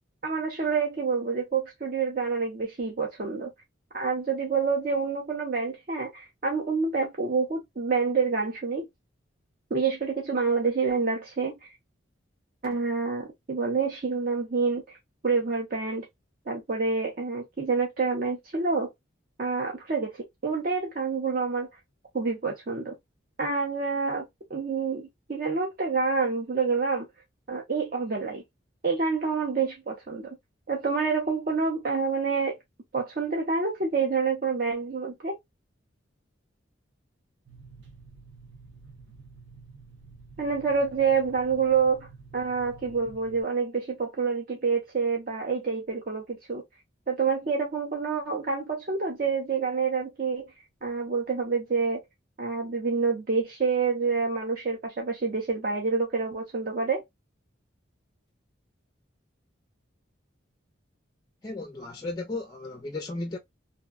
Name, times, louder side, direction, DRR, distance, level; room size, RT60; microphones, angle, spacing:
voice 1, 0.2-3.5 3.9-8.9 9.7-11.7 12.6-15.0 15.2-16.1 16.5-18.9 19.4-21.7 22.1-22.9 23.4-27.1 27.5-28.4 28.8-30.3 30.7-32.6 32.9-35.4 40.4-46.6 47.1-50.5 50.8-52.0 52.4-57.0, right 4 dB, 45° right, 0.6 m, -27 dB
sound 1, 37.5-43.4, right 4 dB, 80° right, 0.9 m, -50 dB
voice 2, 61.4-63.4, left 2 dB, 20° left, 0.4 m, -35 dB
2.6 x 2.1 x 2.2 m
head